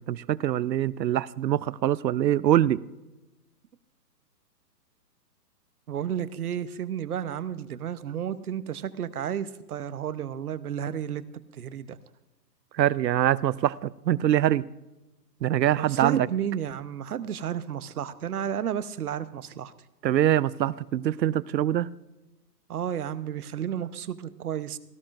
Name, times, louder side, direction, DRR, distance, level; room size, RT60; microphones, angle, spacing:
voice 1, 0.0-2.8 12.7-14.6 15.4-16.3 20.0-21.9, right 12 dB, 85° right, 20 dB, 0.6 m, -24 dB
voice 2, 5.9-11.3 11.5-12.0 15.7-19.7 22.7-24.8, right 9 dB, 60° right, 14 dB, 0.9 m, -32 dB
17.5 x 14.0 x 2.5 m, 1.0 s
hypercardioid pair, 160°, 50 cm